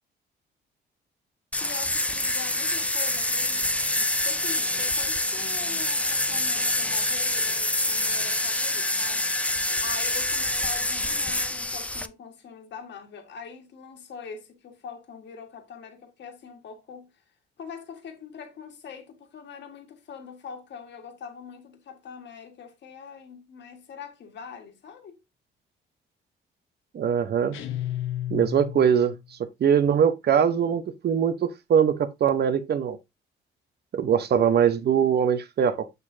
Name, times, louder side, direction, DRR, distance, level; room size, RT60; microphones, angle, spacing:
sound 1, 1.5-12.1, left 1 dB, 5° left, 0.5 m, -26 dB
voice 1, 1.6-3.7 4.0-9.2 9.8-17.1 17.6-25.2, left 6 dB, 65° left, 1.7 m, -43 dB
voice 2, 26.9-27.6 28.3-29.2 29.6-33.0 33.9-35.9, right 8 dB, 55° right, 1.0 m, -22 dB
sound 2, 27.5-29.2, left 13 dB, 90° left, 1.0 m, -32 dB
6.8 x 6.7 x 2.7 m
cardioid pair, 90°, 20 cm